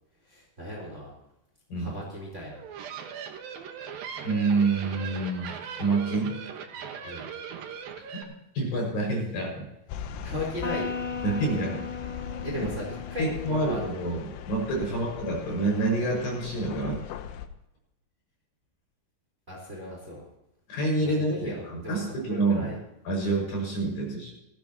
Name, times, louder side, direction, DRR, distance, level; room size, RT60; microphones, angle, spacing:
voice 1, 0.2-1.1 1.8-2.6 7.0-7.3 10.2-11.0 12.4-13.8 14.8-15.0 19.5-20.2 21.0-22.8, left 1 dB, 15° right, -2 dB, 4.3 m, -37 dB
sound 1, 2.5-8.2, right 7 dB, 65° right, 2.8 m, -39 dB
voice 2, 4.2-5.5 5.8-6.4 8.5-9.7 11.2-11.8 12.6-12.7 13.2-17.0 20.7-22.7 23.1-24.3, right 2 dB, 55° left, -2 dB, 7.6 m, -27 dB
sound 2, 9.9-17.5, left 9 dB, 80° left, 2.9 m, -40 dB
Electric guitar, 10.6-14.2, left 5 dB, 30° left, 2.9 m, -36 dB
19.0 x 16.0 x 3.0 m, 0.85 s
omnidirectional pair, 4.9 m